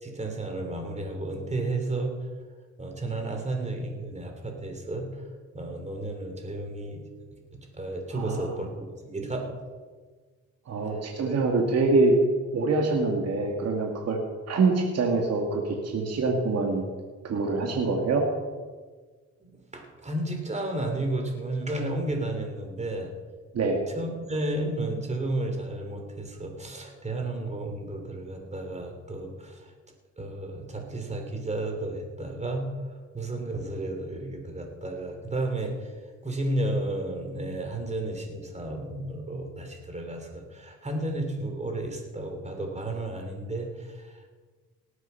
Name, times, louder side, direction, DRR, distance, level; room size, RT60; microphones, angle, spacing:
voice 1, 0.0-2.1 2.8-5.2 5.5-7.0 7.5-8.7 9.0-9.6 10.8-11.1 19.4-23.1 23.9-29.7 30.2-32.7 33.1-35.9 36.2-44.3, right 2 dB, 20° right, 3 dB, 3.1 m, -32 dB
voice 2, 8.1-8.6 10.7-12.1 12.5-14.2 14.5-16.9 17.2-18.2 23.5-23.8, right 3 dB, 55° right, 1 dB, 2.0 m, -25 dB
18.5 x 8.2 x 5.6 m, 1.4 s
cardioid pair, 90°, 30 cm